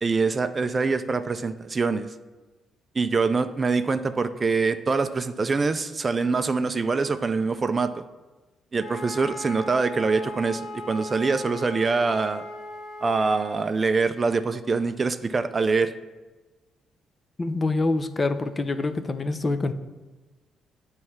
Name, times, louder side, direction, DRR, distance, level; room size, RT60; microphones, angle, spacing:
voice 1, 0.0-2.1 2.9-8.1 8.7-12.4 13.0-15.9, right 4 dB, 30° right, 10 dB, 0.4 m, -24 dB
Wind instrument woodwind instrument, 8.8-13.6, left 2 dB, 60° left, 0.8 m, -38 dB
voice 2, 17.4-19.7, left 3 dB, 30° left, 10 dB, 0.5 m, -25 dB
9.1 x 3.2 x 5.7 m, 1.2 s
cardioid pair, 90°, 0 cm